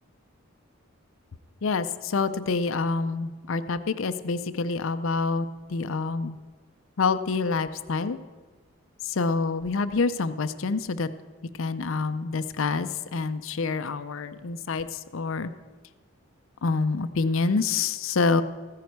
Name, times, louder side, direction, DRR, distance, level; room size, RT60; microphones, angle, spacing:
voice 1, 1.6-6.4 7.0-8.2 9.2-11.1 11.6-15.5 16.6-18.4, left 4 dB, 70° left, 12 dB, 0.5 m, -27 dB
14.5 x 9.5 x 4.6 m, 1.4 s
head